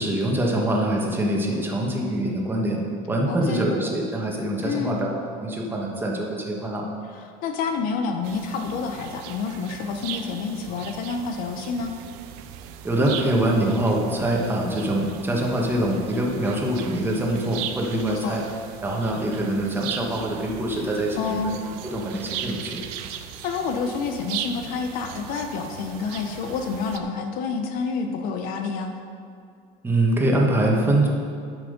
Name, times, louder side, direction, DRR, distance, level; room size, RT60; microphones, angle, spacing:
voice 1, 0.0-2.8 3.1-5.1 5.4-6.9 12.8-18.4 18.8-22.8 29.8-31.1, right 1 dB, 10° right, -1 dB, 1.4 m, -24 dB
voice 2, 3.3-3.7 4.6-5.1 7.1-11.9 18.1-18.4 21.2-21.6 23.4-28.9, left 5 dB, 55° left, 5 dB, 0.9 m, -28 dB
sound 1, 8.2-27.0, right 10 dB, 70° right, 0.7 m, -38 dB
11.5 x 6.1 x 5.2 m, 2.4 s
cardioid pair, 145°, 17 cm